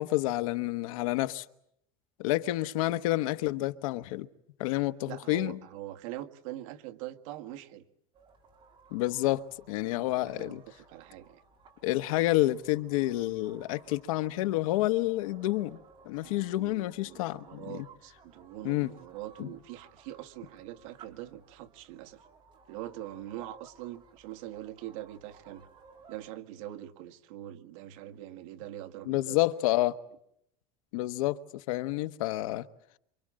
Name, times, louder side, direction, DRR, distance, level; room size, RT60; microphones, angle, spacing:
voice 1, 0.0-1.4 2.2-4.3 4.6-5.6 8.9-10.6 11.8-15.8 16.0-17.8 18.6-18.9 19.4-19.5 29.1-30.0 30.9-32.7, left 17 dB, 80° left, 1.2 m, -29 dB
voice 2, 5.1-7.8 9.9-11.4 16.2-22.2 22.7-25.7 26.1-29.4 29.7-29.8, right 14 dB, 70° right, 1.9 m, -43 dB
sound 1, 8.1-26.3, right 5 dB, 30° right, 4.4 m, -58 dB
27.5 x 25.0 x 7.7 m
cardioid pair, 170°, 17 cm